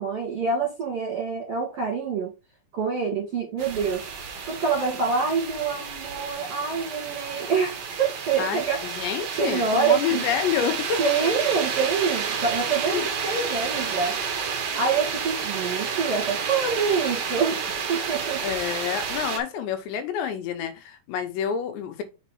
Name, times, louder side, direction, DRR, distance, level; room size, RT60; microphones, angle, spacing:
voice 1, 0.0-2.3 2.7-4.1 4.4-8.9 9.4-10.2 11.0-14.2 14.7-17.6 17.9-18.4, right 5 dB, 55° right, 1.8 m, -26 dB
sound 1, 3.6-19.4, right 6 dB, 75° right, 1.4 m, -30 dB
voice 2, 8.4-11.2 12.9-13.1 18.4-22.0, left 8 dB, 85° left, 3.2 m, -28 dB
6.6 x 4.1 x 4.5 m
omnidirectional pair, 5.0 m